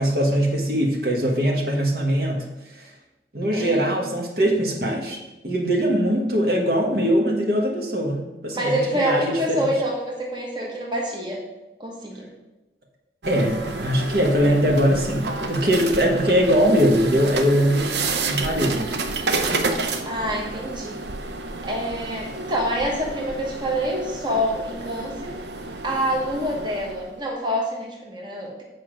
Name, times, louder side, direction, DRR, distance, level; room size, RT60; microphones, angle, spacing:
voice 1, 0.0-2.4 2.8-2.9 3.3-5.2 5.4-9.7 13.3-18.9, equal, 55° right, 0 dB, 1.3 m, -21 dB
voice 2, 3.5-4.0 8.5-11.4 11.8-12.3 20.0-21.0 21.6-25.3 25.8-28.6, equal, 25° right, -2 dB, 1.2 m, -26 dB
sound 1, 13.2-27.2, right 3 dB, 75° right, 0.7 m, -30 dB
8.4 x 4.7 x 5.1 m, 1.0 s
head